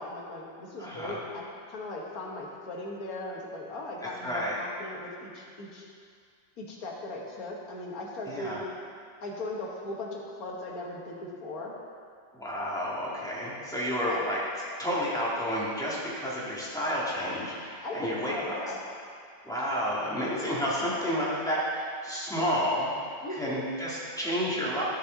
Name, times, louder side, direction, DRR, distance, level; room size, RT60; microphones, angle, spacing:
voice 1, 0.0-5.9 6.6-8.6 9.2-11.7 14.0-14.2 17.8-18.8 23.2-23.6, left 2 dB, 55° left, -2 dB, 1.7 m, -38 dB
voice 2, 0.8-1.2 4.0-4.6 8.3-8.6 12.3-14.4 14.8-18.6 19.5-22.9 23.3-24.8, equal, ahead, -8 dB, 1.9 m, -30 dB
13.0 x 6.6 x 3.9 m, 2.2 s
omnidirectional pair, 2.0 m